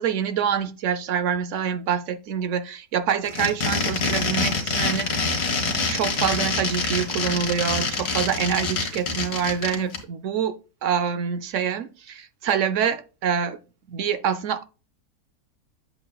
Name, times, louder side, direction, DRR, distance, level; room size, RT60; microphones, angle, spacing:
voice 1, 0.0-10.5 10.8-13.6 13.9-14.6, right 8 dB, 65° right, 0.8 m, -26 dB
sound 1, 3.2-10.0, left 4 dB, 80° left, 2.0 m, -25 dB
7.9 x 7.4 x 2.2 m
omnidirectional pair, 1.6 m